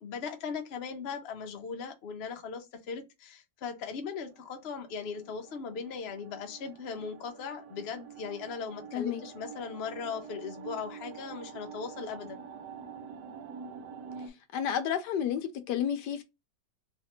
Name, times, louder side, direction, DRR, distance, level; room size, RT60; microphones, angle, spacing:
voice 1, 0.0-12.4, left 6 dB, 60° left, 0.6 m, -39 dB
sound 1, 4.3-14.3, right 6 dB, 70° right, 1.3 m, -46 dB
voice 2, 14.5-16.2, left 9 dB, 75° left, 1.2 m, -31 dB
3.2 x 2.8 x 2.9 m
omnidirectional pair, 1.9 m